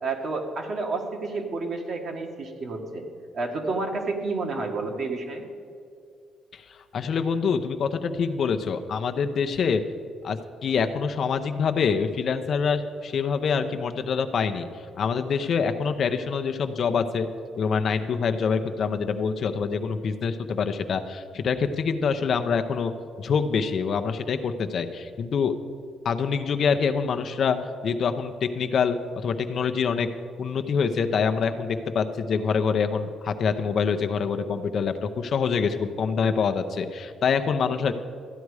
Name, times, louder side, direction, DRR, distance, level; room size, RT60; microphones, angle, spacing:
voice 1, 0.0-3.0 3.3-5.4, right 3 dB, 60° right, 3 dB, 1.5 m, -30 dB
voice 2, 6.9-9.8 10.2-14.7 15.0-17.3 17.6-22.9 23.2-25.5 26.0-27.6 27.8-30.1 30.4-37.9, left 6 dB, 60° left, 8 dB, 0.7 m, -25 dB
13.5 x 9.4 x 4.8 m, 2.3 s
cardioid pair, 90°, 0 cm